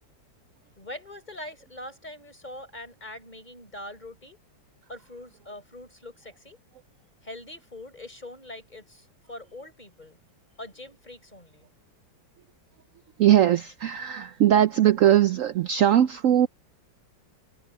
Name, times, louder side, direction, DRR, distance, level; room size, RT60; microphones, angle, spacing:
voice 1, 0.8-4.4 4.9-6.6 7.2-10.2 10.6-11.7, left 1 dB, 20° left, 4.9 m, -43 dB
voice 2, 13.2-16.5, right 11 dB, 75° right, 0.7 m, -20 dB
omnidirectional pair, 2.0 m